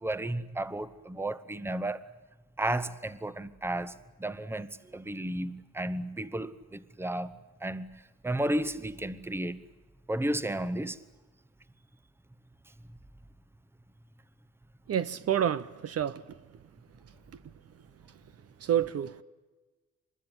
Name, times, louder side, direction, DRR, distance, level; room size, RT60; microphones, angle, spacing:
voice 1, 0.0-2.0 2.6-3.9 4.2-4.7 4.9-7.3 7.6-7.9 8.2-9.6 10.1-11.0, right 1 dB, 10° right, 1.0 m, -33 dB
voice 2, 14.9-16.4 17.3-17.5 18.6-19.2, right 9 dB, 55° right, 0.8 m, -29 dB
24.5 x 21.0 x 8.9 m
cardioid pair, 90°, 30 cm